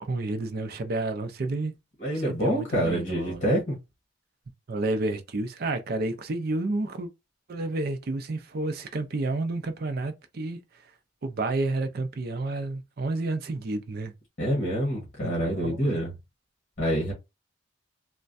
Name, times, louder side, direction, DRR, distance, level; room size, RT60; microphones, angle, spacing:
voice 1, 0.0-1.7 2.1-3.5 4.7-7.1 7.5-10.9 11.2-14.1 15.2-15.9, right 2 dB, 50° right, 0.5 m, -30 dB
voice 2, 2.0-3.8 14.4-16.1 16.8-17.1, equal, 40° left, 1.2 m, -26 dB
3.2 x 2.2 x 2.5 m
head